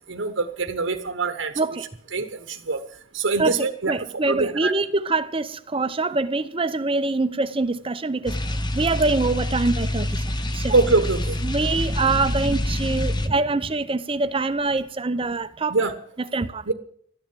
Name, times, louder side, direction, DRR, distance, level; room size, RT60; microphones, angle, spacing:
voice 1, 0.1-1.5 2.1-2.8 3.1-3.9 4.3-4.7 10.7-11.4 15.7-15.9 16.7-16.8, right 3 dB, 65° right, 1.1 m, -23 dB
voice 2, 3.4-10.2 10.5-10.7 11.4-15.8 16.3-16.7, right 3 dB, 25° right, 0.7 m, -24 dB
sound 1, 8.3-13.3, left 1 dB, 20° left, 0.8 m, -26 dB
13.0 x 10.5 x 7.6 m
head